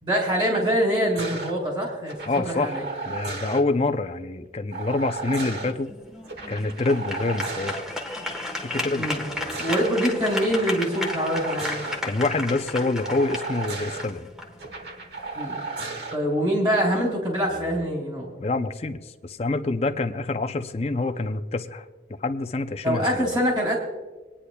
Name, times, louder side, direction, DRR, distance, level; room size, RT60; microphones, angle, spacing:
voice 1, 0.0-2.1 2.4-2.8 9.0-9.3 9.6-11.8 15.3-15.6 16.1-18.4 22.8-23.8, equal, 25° right, -2 dB, 3.9 m, -24 dB
sound 1, 1.1-1.5 2.1-3.6 4.7-5.7 6.2-7.8 9.1-9.9 10.4-12.0 13.0-14.0 14.6-16.2 17.4-17.8, right 3 dB, 70° right, 1.3 m, -34 dB
voice 2, 2.3-2.8 3.1-5.9 6.5-7.7 8.6-9.2 12.0-14.3 18.4-21.9 22.2-23.3, left 3 dB, 35° left, 7 dB, 0.5 m, -26 dB
sound 2, 5.2-15.3, left 2 dB, 5° right, 1.2 m, -34 dB
26.5 x 9.9 x 2.3 m, 1.3 s
head